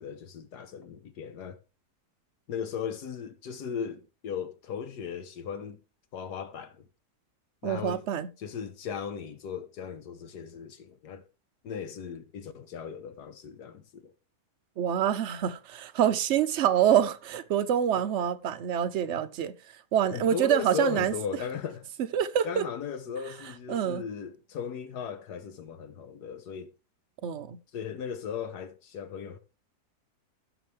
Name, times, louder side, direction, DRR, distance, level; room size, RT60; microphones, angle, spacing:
voice 1, 0.0-1.6 2.5-5.8 6.1-6.8 7.6-8.0 8.4-11.2 11.6-14.1 20.1-21.9 22.4-26.7 27.7-29.4, left 7 dB, 85° left, 1.5 m, -37 dB
voice 2, 7.6-8.3 14.8-21.1 22.1-22.6 23.7-24.1 27.2-27.6, right 10 dB, 60° right, 0.8 m, -26 dB
16.0 x 6.0 x 3.2 m
omnidirectional pair, 1.7 m